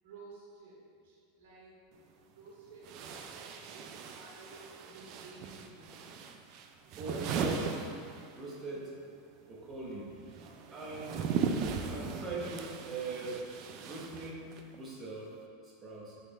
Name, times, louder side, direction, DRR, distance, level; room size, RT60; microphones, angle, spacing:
voice 1, 0.0-1.8 2.2-6.3 10.3-10.8, right 3 dB, 70° right, -4 dB, 1.0 m, -54 dB
sound 1, 1.9-2.0 2.8-8.6 8.9-14.8, right 6 dB, 50° right, 0.3 m, -38 dB
voice 2, 6.9-7.9 8.3-8.9 9.4-10.1 10.7-11.3 11.9-13.5 13.8-16.2, right 2 dB, 20° right, -5 dB, 1.0 m, -41 dB
4.0 x 3.2 x 4.0 m, 2.3 s
supercardioid pair, 130°, 0 cm